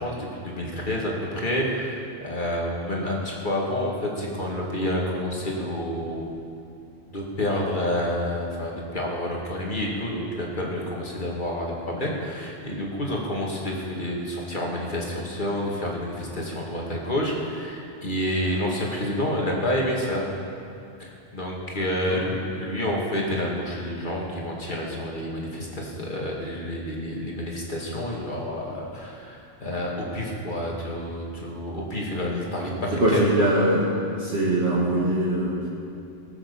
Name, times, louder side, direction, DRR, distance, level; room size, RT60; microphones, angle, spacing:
voice 1, 0.0-6.3 7.1-20.3 21.0-33.3, left 1 dB, 50° left, -2 dB, 2.4 m, -29 dB
voice 2, 32.9-33.9 34.2-35.7, right 1 dB, 85° right, -7 dB, 2.1 m, -22 dB
18.5 x 7.3 x 7.0 m, 2.6 s
omnidirectional pair, 1.0 m